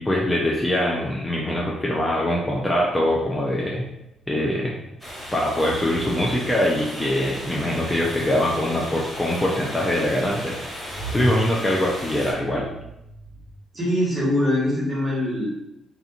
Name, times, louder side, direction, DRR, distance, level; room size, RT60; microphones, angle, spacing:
voice 1, 0.0-3.8 4.3-4.7 5.3-12.7, left 1 dB, 15° left, -3 dB, 0.4 m, -23 dB
sound 1, 4.1-13.5, equal, 60° left, 1.2 m, -39 dB
sound 2, 5.0-12.3, equal, ahead, 1.1 m, -36 dB
voice 2, 13.7-15.5, left 1 dB, 25° right, -6 dB, 1.4 m, -23 dB
2.8 x 2.4 x 2.4 m, 0.85 s
cardioid pair, 90°, 0 cm